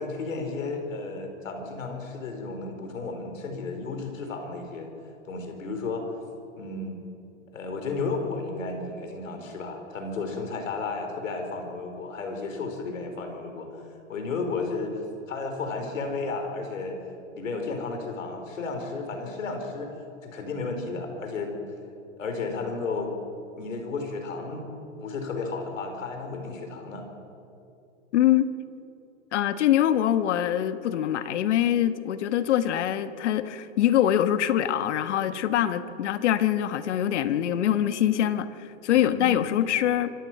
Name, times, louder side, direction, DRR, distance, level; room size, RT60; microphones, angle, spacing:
voice 1, 0.0-4.9 5.2-6.0 6.6-7.0 7.5-17.0 17.3-19.9 20.2-21.6 22.2-23.2 23.6-24.6 25.0-27.1 38.9-39.4, left 3 dB, 85° left, 4 dB, 4.8 m, -33 dB
voice 2, 28.1-28.5 29.3-40.1, left 11 dB, 65° left, 11 dB, 1.3 m, -24 dB
25.0 x 14.0 x 7.5 m, 2.7 s
hypercardioid pair, 140°, 38 cm